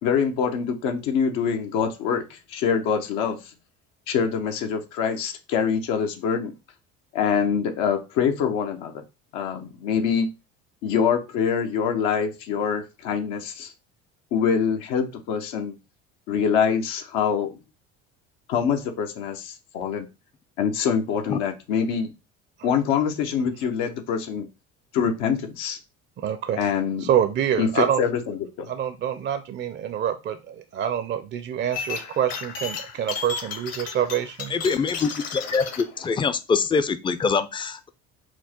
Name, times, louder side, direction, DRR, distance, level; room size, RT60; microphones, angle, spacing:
voice 1, 0.0-3.4 4.1-6.5 7.1-9.0 9.3-10.3 10.8-13.7 14.3-15.7 16.3-17.5 18.5-20.1 20.6-22.1 22.6-24.5 24.9-25.8 26.5-27.1 27.6-28.7, left 7 dB, 80° left, 0.8 m, -25 dB
voice 2, 26.2-26.6 27.0-28.0 28.7-34.5, right 9 dB, 35° right, 0.5 m, -26 dB
sound 1, 31.7-35.8, left 6 dB, 55° left, 0.9 m, -34 dB
voice 3, 34.5-37.9, left 5 dB, 15° left, 0.4 m, -24 dB
4.5 x 2.1 x 4.2 m
supercardioid pair, 90°, 31 cm